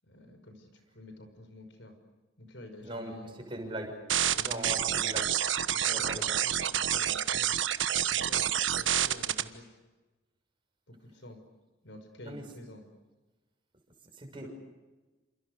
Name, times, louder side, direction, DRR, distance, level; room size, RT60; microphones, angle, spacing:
voice 1, 0.0-1.9 2.4-3.4 4.3-4.9 5.7-7.6 8.1-9.8 10.9-11.4 11.8-12.8 14.3-14.5, left 1 dB, 65° left, 7 dB, 5.7 m, -49 dB
voice 2, 2.8-3.1 3.5-4.0 4.4-5.3 5.8-6.4 12.2-12.4 14.2-14.5, right 1 dB, 25° right, 2 dB, 6.6 m, -39 dB
sound 1, 4.1-9.4, right 10 dB, 70° right, 1.2 m, -28 dB
29.0 x 27.5 x 6.7 m, 1.2 s
head